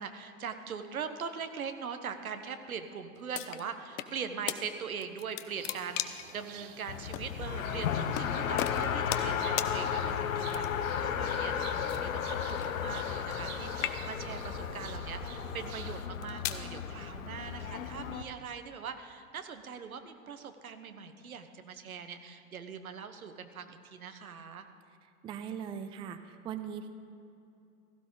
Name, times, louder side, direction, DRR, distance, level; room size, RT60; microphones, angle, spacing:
voice 1, 0.0-24.7, right 6 dB, 75° right, 8 dB, 1.1 m, -41 dB
sound 1, 3.3-4.1 4.5-4.6 5.0-6.3 7.1-7.3 8.1-8.3 8.6-9.3 9.6-9.7 10.5-10.9 11.9-13.5 13.7-14.3 15.0-15.3 16.0-16.6, left 14 dB, 40° left, 0.7 m, -36 dB
sound 2, 5.6-16.1, right 9 dB, 50° right, 1.0 m, -48 dB
Race car auto racing, 6.9-18.2, left 8 dB, 70° left, 0.8 m, -34 dB
voice 2, 25.2-26.9, right 8 dB, 15° right, 10 dB, 0.4 m, -39 dB
16.0 x 15.0 x 3.9 m, 2.7 s
figure-of-eight pair, 85°, 42 cm